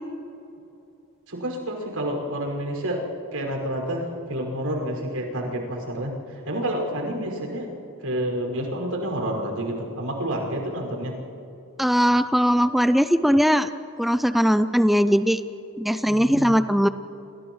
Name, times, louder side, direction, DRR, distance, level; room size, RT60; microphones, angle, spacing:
voice 1, 1.3-3.0 3.3-6.1 6.4-7.7 8.0-11.1 16.1-16.5, right 1 dB, 90° right, 0 dB, 5.7 m, -29 dB
voice 2, 11.8-13.7 14.0-15.4 15.8-16.9, equal, ahead, 10 dB, 0.4 m, -20 dB
28.5 x 28.5 x 3.2 m, 2.9 s
head